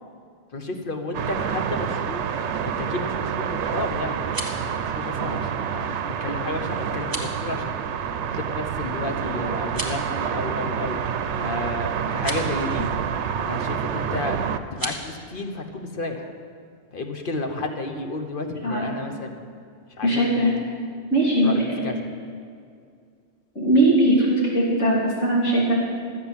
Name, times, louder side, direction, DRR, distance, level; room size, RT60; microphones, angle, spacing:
voice 1, 0.5-2.3 2.7-11.0 11.4-12.9 13.5-14.4 14.7-16.3 16.9-19.4 20.0-20.6 21.4-22.1, left 2 dB, 50° left, 5 dB, 1.1 m, -32 dB
sound 1, 1.1-14.6, right 7 dB, 70° right, 0.9 m, -28 dB
sound 2, 4.1-4.7 7.0-7.4 9.6-10.1 12.1-12.5 14.7-15.0, right 1 dB, 20° right, 1.3 m, -33 dB
voice 2, 20.0-20.5 21.1-21.6 23.6-25.7, right 1 dB, 80° left, -6 dB, 3.5 m, -20 dB
12.5 x 8.0 x 7.3 m, 2.3 s
omnidirectional pair, 1.3 m